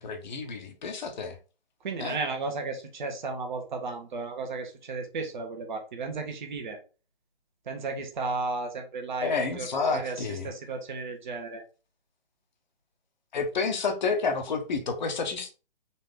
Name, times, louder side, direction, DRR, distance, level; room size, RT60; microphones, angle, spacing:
voice 1, 0.0-1.4 2.0-2.2 9.2-10.5 13.3-15.5, left 4 dB, 50° left, 0.9 m, -30 dB
voice 2, 1.8-6.8 7.7-11.6, right 3 dB, 50° right, 1.1 m, -34 dB
4.2 x 2.8 x 3.4 m
figure-of-eight pair, 135°, 29 cm